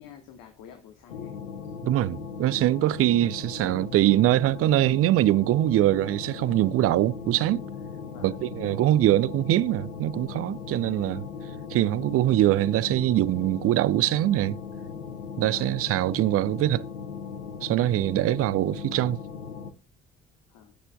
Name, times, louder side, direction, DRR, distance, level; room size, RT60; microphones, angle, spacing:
voice 1, 0.0-1.4 1.6-1.7 8.0-8.4 15.5-15.8 20.5-20.7, left 9 dB, 60° left, 1.3 m, -48 dB
sound 1, 1.1-19.7, left 6 dB, 85° left, 0.8 m, -38 dB
voice 2, 1.8-7.6 8.2-11.3 11.7-14.6 15.4-16.8 17.6-19.2, right 14 dB, 40° right, 0.4 m, -23 dB
17.0 x 6.7 x 2.3 m
figure-of-eight pair, 45°, 38 cm